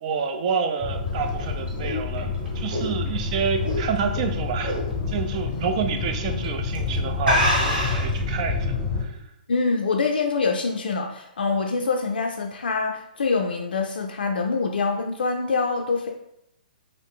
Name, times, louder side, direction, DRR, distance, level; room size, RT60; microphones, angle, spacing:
voice 1, 0.0-4.8 5.1-9.2, right 6 dB, 45° right, 6 dB, 0.4 m, -28 dB
sound 1, 0.8-9.0, left 4 dB, 20° left, 0.7 m, -28 dB
sound 2, 1.1-4.2 4.6-4.9 5.3-5.4 6.2-6.5 6.8-6.9 7.2-8.2, equal, 75° right, 1.4 m, -25 dB
voice 2, 9.5-16.1, left 4 dB, 80° left, 2 dB, 0.3 m, -25 dB
2.6 x 2.5 x 3.5 m, 0.80 s
hypercardioid pair, 130°, 5 cm